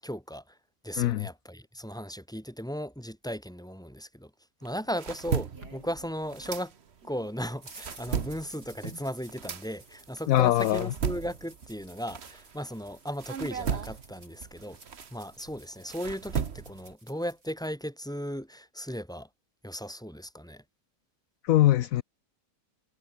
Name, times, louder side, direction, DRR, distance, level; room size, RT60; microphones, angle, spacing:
voice 1, 0.0-0.6 0.8-4.3 4.6-6.7 7.1-14.8 15.1-19.3 19.6-20.6, equal, ahead, 6.6 m, -36 dB
voice 2, 1.0-1.3 10.3-10.9 21.4-22.0, left 14 dB, 65° left, 0.9 m, -22 dB
sound 1, 4.6-7.2 7.5-12.8 13.2-16.9, right 7 dB, 40° right, 1.3 m, -36 dB
sound 2, 4.8-6.6 7.0-17.5, right 2 dB, 65° right, 6.5 m, -52 dB
omnidirectional pair, 1.9 m